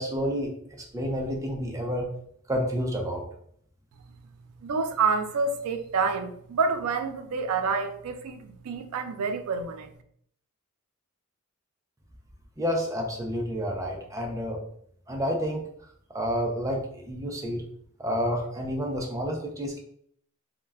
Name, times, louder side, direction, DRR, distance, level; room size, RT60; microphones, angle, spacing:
voice 1, 0.0-2.1 2.5-3.2 12.6-14.6 15.1-15.6 16.1-17.6 18.0-19.8, equal, 15° right, 0.4 m, -29 dB
voice 2, 4.6-9.9, right 4 dB, 80° right, 0.4 m, -28 dB
2.2 x 2.1 x 3.3 m
head